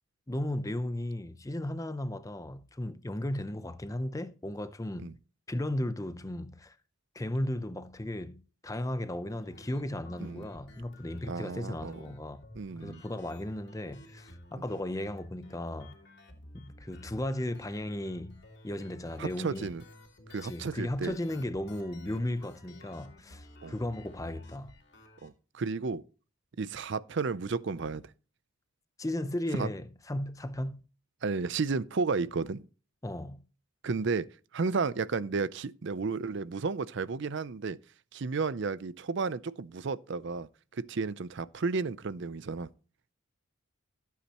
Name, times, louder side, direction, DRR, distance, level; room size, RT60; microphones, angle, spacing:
voice 1, 0.3-5.1 5.5-6.8 7.1-12.4 12.8-16.0 16.5-19.7 20.4-24.8 29.0-30.9 33.0-33.5, left 1 dB, 15° left, 0.6 m, -35 dB
sound 1, 9.3-25.3, left 1 dB, 50° left, 2.8 m, -53 dB
voice 2, 11.3-12.0 12.6-13.0 19.2-19.8 20.3-21.2 23.6-23.7 25.2-26.0 26.6-28.1 29.6-29.7 31.2-32.7 33.8-34.3 34.5-37.8 38.1-42.7, right 4 dB, 55° right, 0.5 m, -33 dB
16.0 x 8.4 x 2.9 m
head